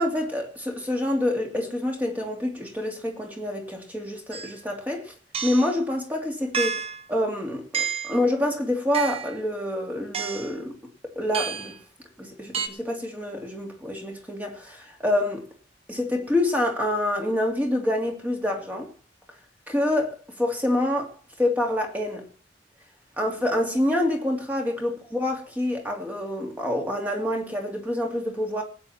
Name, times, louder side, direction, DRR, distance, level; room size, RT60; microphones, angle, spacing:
voice 1, 0.0-5.1 5.4-6.8 7.1-10.8 11.1-11.8 12.2-15.4 15.9-18.9 19.7-21.1 21.4-22.2 23.2-28.6, left 1 dB, 10° right, 2.9 m, -27 dB
sound 1, 4.3-4.5 5.3-5.7 6.5-7.0 7.7-8.2 8.9-9.4 10.1-10.5 11.3-11.8 12.5-12.7, right 7 dB, 35° right, 1.1 m, -30 dB
20.0 x 9.1 x 4.4 m
head